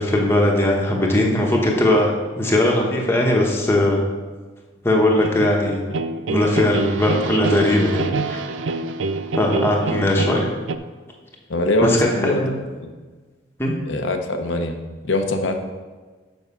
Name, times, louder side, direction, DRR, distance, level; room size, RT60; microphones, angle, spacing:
voice 1, 0.0-4.0 4.8-5.8 6.3-8.4 9.4-10.5 11.8-12.6 13.6-13.7, left 1 dB, 15° left, -2 dB, 1.1 m, -19 dB
sound 1, 4.9-10.8, right 3 dB, 85° right, 0.5 m, -26 dB
voice 2, 11.5-12.4 12.8-12.9 13.9-14.8 15.0-15.5, left 1 dB, 80° left, 4 dB, 0.8 m, -22 dB
7.2 x 5.3 x 5.6 m, 1.4 s
head